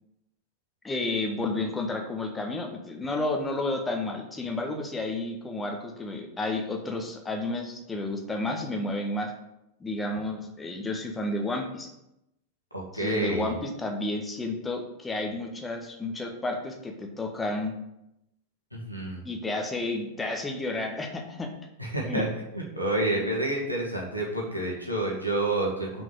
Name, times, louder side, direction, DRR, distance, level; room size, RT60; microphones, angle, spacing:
voice 1, 0.8-9.3 9.8-11.9 12.9-17.7 19.2-21.5 22.0-22.2, left 2 dB, 10° left, 3 dB, 1.3 m, -31 dB
voice 2, 12.7-13.5 18.7-19.2 21.8-22.3 22.5-26.0, right 1 dB, 90° right, -3 dB, 2.1 m, -29 dB
5.8 x 5.4 x 6.3 m, 0.87 s
figure-of-eight pair, 90°, 0 cm